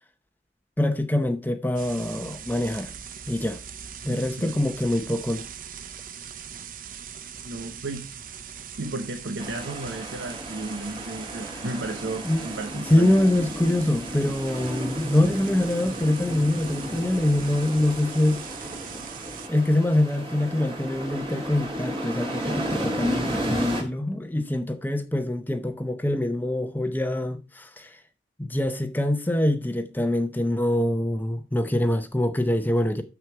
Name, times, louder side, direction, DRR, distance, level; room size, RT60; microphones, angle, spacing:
voice 1, 0.8-2.9 3.3-3.6 4.0-5.4 12.2-12.4 12.7-18.4 19.5-28.0 28.4-33.0, left 1 dB, 10° left, 0.7 m, -24 dB
sound 1, 1.8-19.5, right 7 dB, 50° right, 0.7 m, -41 dB
voice 2, 4.1-4.5 7.4-8.1 8.8-13.2, right 2 dB, 85° right, 0.9 m, -34 dB
sound 2, 9.4-23.8, right 1 dB, 30° right, 2.6 m, -33 dB
7.3 x 6.3 x 4.6 m
head